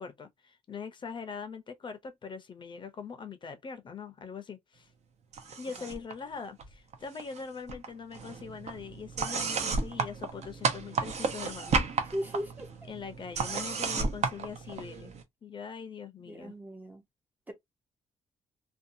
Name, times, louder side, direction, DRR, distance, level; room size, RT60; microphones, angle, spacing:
voice 1, 0.0-4.9 5.6-11.8 12.9-15.1 15.4-16.5, left 5 dB, 35° left, 0.5 m, -42 dB
sound 1, 5.3-6.1 6.4-7.4 7.7-15.2, right 4 dB, 55° right, 0.7 m, -33 dB
voice 2, 12.1-12.9 16.2-17.0 17.5-17.6, equal, 15° right, 0.5 m, -38 dB
2.7 x 2.2 x 2.5 m
cardioid pair, 125°, 13 cm